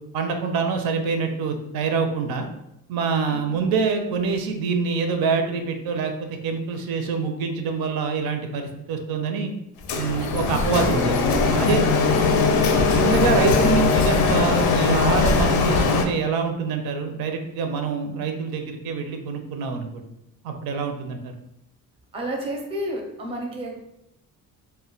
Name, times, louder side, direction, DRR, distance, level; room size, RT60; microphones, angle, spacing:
voice 1, 0.1-2.5 2.9-9.5 9.9-11.2 11.6-11.8 12.9-20.0 20.4-21.3, right 5 dB, 80° right, 5 dB, 0.5 m, -25 dB
Printer, 9.9-16.1, left 4 dB, 80° left, 0.5 m, -20 dB
voice 2, 11.5-11.9 22.1-23.8, right 1 dB, 15° right, 0 dB, 0.4 m, -31 dB
2.1 x 2.1 x 3.7 m, 0.83 s
cardioid pair, 155°, 35 cm